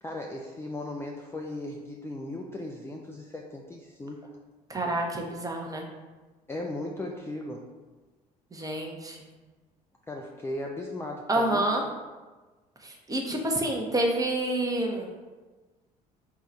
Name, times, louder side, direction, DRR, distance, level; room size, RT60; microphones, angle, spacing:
voice 1, 0.0-4.3 6.5-7.7 10.1-11.7, left 1 dB, 10° left, 0 dB, 0.4 m, -37 dB
voice 2, 4.7-5.9 8.5-9.2 11.3-11.8 12.8-15.1, right 1 dB, 15° right, 1 dB, 0.8 m, -28 dB
3.7 x 2.3 x 4.3 m, 1.3 s
figure-of-eight pair, 55°, 20 cm